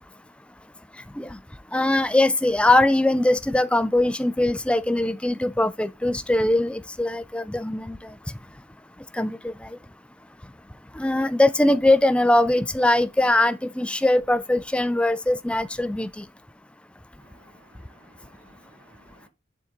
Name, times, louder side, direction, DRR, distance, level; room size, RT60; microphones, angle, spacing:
voice 1, 1.7-8.0 9.2-9.5 11.0-16.2, left 1 dB, 5° left, 0.3 m, -21 dB
voice 2, 17.2-19.3, right 1 dB, 65° right, 1.8 m, -57 dB
7.2 x 3.9 x 3.7 m
head